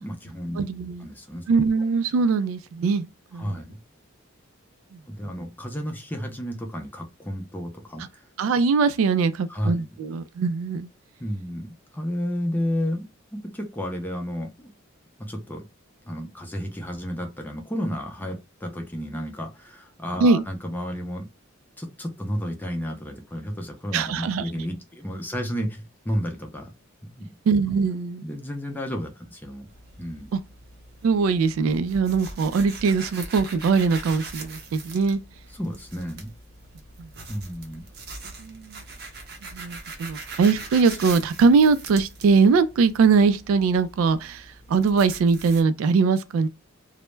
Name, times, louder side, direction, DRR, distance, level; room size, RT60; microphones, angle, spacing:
voice 1, 0.0-0.6 1.0-1.4 3.4-3.8 5.1-8.2 9.5-9.7 11.2-11.7 11.9-13.0 13.3-14.7 15.2-15.7 16.1-21.3 21.8-26.7 27.0-27.3 28.2-29.7 30.0-30.3 35.5-36.3 37.3-37.8, equal, 10° left, 0.5 m, -32 dB
voice 2, 0.6-1.1 1.5-3.1 3.3-3.6 8.4-10.9 20.2-20.4 23.9-24.5 27.5-28.2 30.3-30.4 31.0-35.2 37.0-37.1 38.4-38.8 39.5-46.5, right 4 dB, 80° right, 0.3 m, -21 dB
sound 1, 29.7-45.6, right 3 dB, 55° right, 0.7 m, -41 dB
2.1 x 2.0 x 3.1 m
head